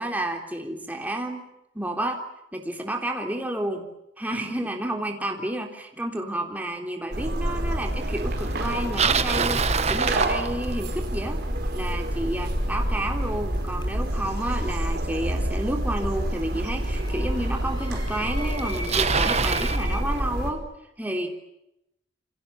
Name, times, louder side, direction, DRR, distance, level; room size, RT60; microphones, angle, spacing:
voice 1, 0.0-1.5 1.7-2.2 2.5-3.9 4.2-11.4 11.7-20.6 21.0-21.3, right 1 dB, 10° right, 2 dB, 3.4 m, -30 dB
sound 1, 7.1-20.5, right 1 dB, 55° right, 5.0 m, -28 dB
Bicycle, 8.6-11.0 16.0-16.1 16.9-17.0 18.1-18.2 18.4-19.8, right 6 dB, 35° right, 1.1 m, -25 dB
sound 2, 10.9-11.4 13.5-14.5 14.8-20.0, left 2 dB, 25° left, 5.3 m, -41 dB
28.5 x 26.0 x 7.0 m, 0.84 s
head